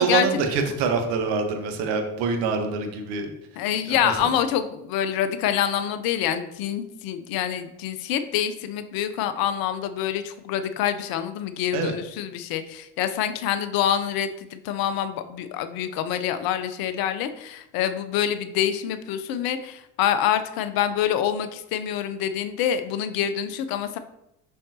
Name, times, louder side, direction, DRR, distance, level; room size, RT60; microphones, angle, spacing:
voice 1, 0.0-3.3 3.9-4.3 11.7-11.9, right 5 dB, 60° right, 5 dB, 1.2 m, -25 dB
voice 2, 3.6-24.0, left 10 dB, 50° left, 10 dB, 0.6 m, -26 dB
6.5 x 5.5 x 2.8 m, 0.83 s
figure-of-eight pair, 60°, 46 cm